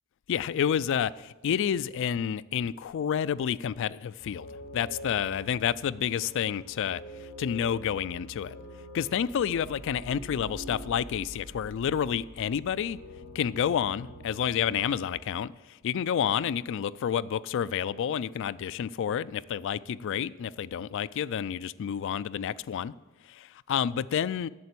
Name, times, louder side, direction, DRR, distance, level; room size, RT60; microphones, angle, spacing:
voice 1, 0.3-4.5 4.7-7.0 7.4-8.6 8.9-13.0 13.3-22.9 23.3-24.5, left 8 dB, 60° left, 0.3 m, -29 dB
sound 1, 4.2-15.2, equal, 80° left, 1.6 m, -45 dB
8.6 x 6.8 x 8.3 m
head